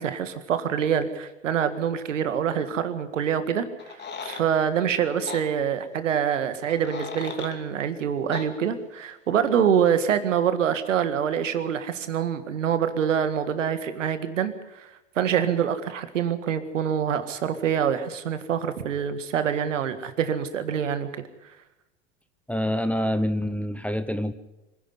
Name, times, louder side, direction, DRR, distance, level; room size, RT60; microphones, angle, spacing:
voice 1, 0.0-14.9 15.2-21.1, right 8 dB, 75° right, 10 dB, 1.9 m, -25 dB
sound 1, 3.8-4.5 5.3-5.4 6.6-7.6 8.3-8.5, left 5 dB, 30° left, 2.8 m, -37 dB
voice 2, 22.5-24.3, equal, 5° left, 12 dB, 1.0 m, -26 dB
25.0 x 11.0 x 9.7 m, 0.99 s
hypercardioid pair, 90°, 37 cm